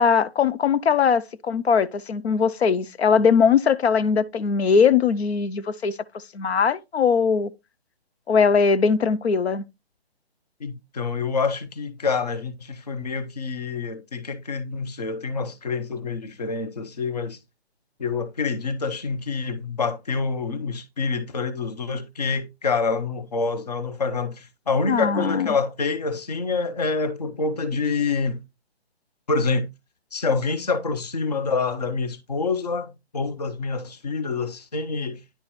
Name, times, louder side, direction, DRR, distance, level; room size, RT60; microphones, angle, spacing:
voice 1, 0.0-5.9 6.3-7.5 8.3-9.6 24.9-25.5, left 6 dB, 85° left, 0.6 m, -20 dB
voice 2, 10.6-17.4 18.0-28.4 29.3-29.7 30.1-35.2, left 4 dB, 40° left, 0.6 m, -27 dB
10.0 x 4.2 x 3.0 m
hypercardioid pair, 175°, 31 cm